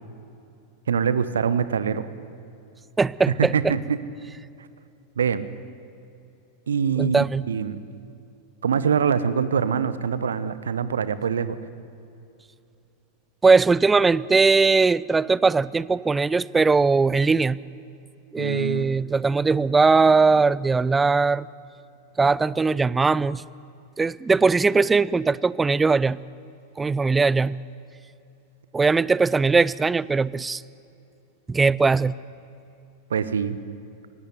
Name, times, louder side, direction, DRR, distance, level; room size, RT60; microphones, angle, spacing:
voice 1, 0.9-2.1 3.4-4.0 5.2-5.5 6.7-7.1 7.5-7.9 8.6-11.6 18.4-18.9 33.1-33.6, right 7 dB, 65° right, 15 dB, 0.9 m, -24 dB
voice 2, 3.0-3.7 7.0-7.4 13.4-17.6 18.3-21.5 22.2-23.4 24.0-26.2 26.8-27.6 28.7-30.6 31.5-32.1, right 4 dB, 10° right, 21 dB, 0.4 m, -20 dB
17.5 x 17.0 x 9.7 m, 2.6 s
figure-of-eight pair, 90°, 0 cm